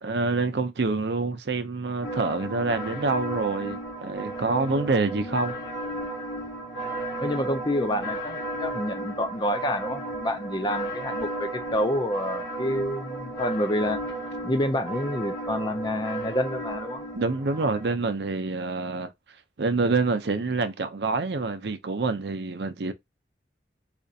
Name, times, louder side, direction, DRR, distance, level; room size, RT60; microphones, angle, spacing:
voice 1, 0.0-5.5 17.1-19.1 19.6-22.9, right 3 dB, 65° right, 0.6 m, -26 dB
sound 1, 2.0-18.0, right 1 dB, 90° left, 1.3 m, -34 dB
voice 2, 7.2-14.0 14.4-17.0, left 1 dB, 25° left, 0.4 m, -28 dB
4.1 x 2.5 x 2.7 m
head